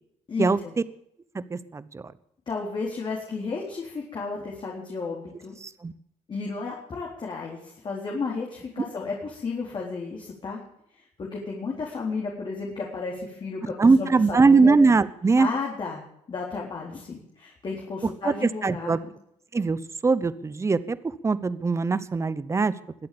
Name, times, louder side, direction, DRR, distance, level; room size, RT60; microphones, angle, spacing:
voice 1, 0.3-0.7 2.5-5.6 6.3-10.6 11.2-14.8 15.4-16.0 16.3-19.0, left 4 dB, 45° left, -2 dB, 4.2 m, -33 dB
voice 2, 1.3-2.1 5.6-5.9 13.8-15.5 18.2-19.0 19.5-22.7, right 4 dB, 25° right, 16 dB, 0.9 m, -21 dB
22.0 x 8.5 x 7.0 m, 0.73 s
cardioid pair, 95°, 12 cm